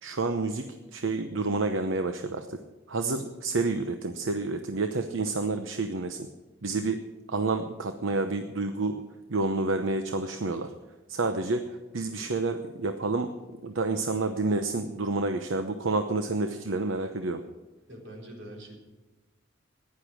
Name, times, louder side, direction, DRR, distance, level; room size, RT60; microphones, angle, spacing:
voice 1, 0.0-2.6 2.9-6.3 6.6-7.0 7.3-9.0 9.3-10.7 11.1-13.3 13.6-17.4, right 3 dB, 90° right, 7 dB, 0.9 m, -29 dB
voice 2, 12.1-12.4 17.9-18.8, right 1 dB, 65° right, 0 dB, 4.1 m, -45 dB
15.0 x 10.5 x 6.3 m, 1.2 s
head